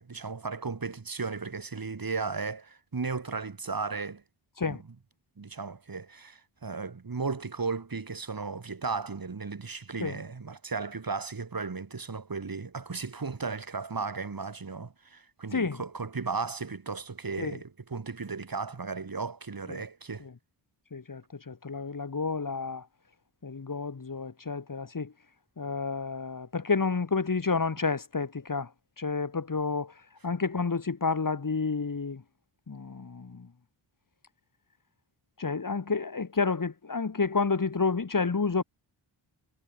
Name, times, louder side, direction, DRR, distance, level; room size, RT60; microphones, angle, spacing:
voice 1, 0.0-4.2 4.6-4.8 5.4-20.3, right 4 dB, 45° right, 3.6 m, -35 dB
voice 2, 20.9-22.9 23.4-25.1 25.6-28.7 29.0-29.9 30.2-32.2 32.7-33.5 35.4-38.6, left 4 dB, 40° left, 2.4 m, -30 dB
cardioid pair, 55°, 49 cm